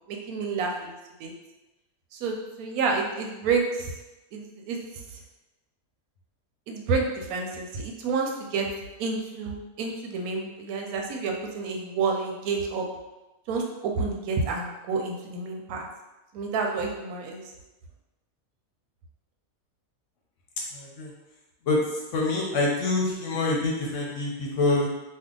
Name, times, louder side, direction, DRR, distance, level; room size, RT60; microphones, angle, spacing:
voice 1, 0.1-0.9 1.2-1.3 2.1-3.9 4.3-4.8 6.7-8.7 9.0-12.9 13.5-15.8 16.3-17.4, right 4 dB, 90° right, 1 dB, 1.1 m, -29 dB
voice 2, 20.7-21.1 21.7-21.8 22.1-24.9, left 2 dB, 65° left, -2 dB, 0.8 m, -26 dB
2.7 x 2.2 x 3.6 m, 1.0 s
omnidirectional pair, 1.5 m